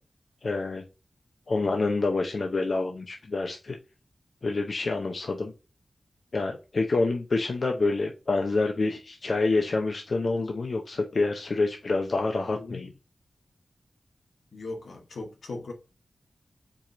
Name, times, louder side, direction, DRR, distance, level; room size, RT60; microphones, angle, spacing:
voice 1, 0.4-0.8 1.5-3.8 4.4-5.5 6.3-12.9, left 3 dB, 65° left, 0.6 m, -27 dB
voice 2, 12.5-12.9 14.5-15.7, left 3 dB, 85° left, 1.0 m, -38 dB
4.7 x 2.5 x 4.1 m
cardioid pair, 45°, 0 cm